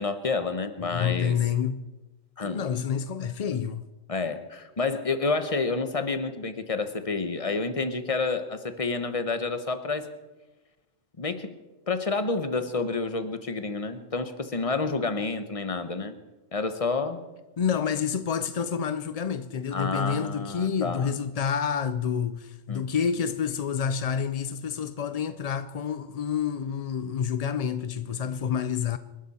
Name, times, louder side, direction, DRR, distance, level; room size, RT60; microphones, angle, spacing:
voice 1, 0.0-1.4 2.4-2.6 3.5-3.6 4.1-10.1 11.2-11.5 11.9-16.1 16.5-17.2 19.7-21.1 22.7-22.9, left 3 dB, 30° left, 1.0 m, -29 dB
voice 2, 0.8-1.8 2.4-3.8 17.6-29.0, left 7 dB, 60° left, 0.4 m, -28 dB
26.5 x 11.5 x 4.3 m
omnidirectional pair, 1.3 m